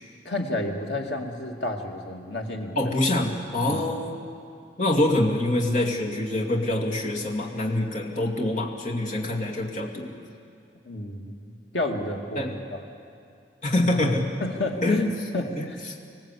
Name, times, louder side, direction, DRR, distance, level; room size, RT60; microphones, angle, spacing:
voice 1, 0.2-2.9 3.7-3.8 10.9-12.8 14.4-15.8, left 1 dB, 90° left, 2 dB, 2.3 m, -31 dB
voice 2, 2.8-4.3 4.8-10.1 12.3-12.5 13.6-14.3 14.8-15.0 15.6-15.7, left 1 dB, 45° left, -1 dB, 2.6 m, -25 dB
25.5 x 18.0 x 8.4 m, 2.4 s
head